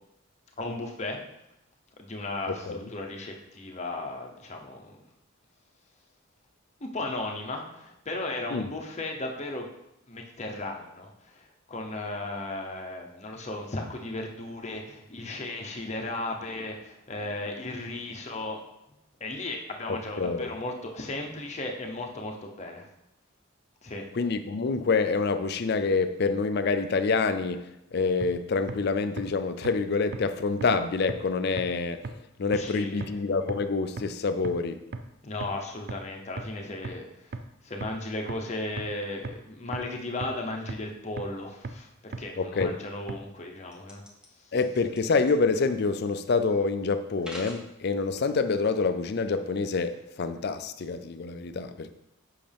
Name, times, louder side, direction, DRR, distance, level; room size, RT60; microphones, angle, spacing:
voice 1, 0.6-1.2 2.0-5.0 6.8-9.7 10.1-18.6 19.2-22.9 23.8-24.0 32.5-33.1 35.2-37.4 37.6-44.0 44.4-44.5, left 2 dB, 35° left, 0.9 m, -36 dB
voice 2, 2.5-2.9 8.5-8.7 19.9-20.5 24.1-34.8 42.4-42.8 44.5-51.9, left 4 dB, 50° left, 0.4 m, -27 dB
sound 1, 28.2-28.3 28.7-28.8 29.2-29.3 29.6-29.7 30.1-30.2 30.6-30.7 31.1-31.2 31.6-31.7 32.0-32.1 32.5-32.6 33.0-33.1 33.5-33.6 34.0-34.1 34.4-34.5 34.9-35.0 35.4-35.5 35.9-36.0 36.4-36.5 36.8-36.9 37.3-37.4 37.8-37.9 38.3-38.4 38.8-38.9 39.2-39.3 39.7-39.8 40.2-40.3 40.7-40.8 41.2-41.3 41.6-41.7 42.1-42.2 42.6-42.7 43.1-43.2, right 4 dB, 50° right, 0.5 m, -34 dB
sound 2, 43.7-44.3 44.6-45.0 45.3-45.4 46.1-46.2 47.1-47.6 48.2-48.7, equal, 5° right, 0.8 m, -43 dB
7.7 x 5.6 x 3.5 m
head